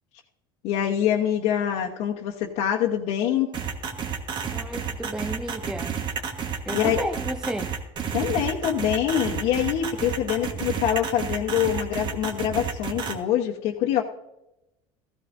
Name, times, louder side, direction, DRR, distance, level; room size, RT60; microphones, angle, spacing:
voice 1, 0.6-3.5 6.7-7.0 8.1-14.0, left 10 dB, 65° left, -3 dB, 1.1 m, -25 dB
sound 1, 3.5-13.1, right 7 dB, 35° right, 1.4 m, -30 dB
voice 2, 4.5-5.9 6.7-7.7, right 1 dB, 5° right, 5 dB, 0.5 m, -32 dB
15.0 x 14.5 x 2.6 m, 0.90 s
cardioid pair, 140°, 13 cm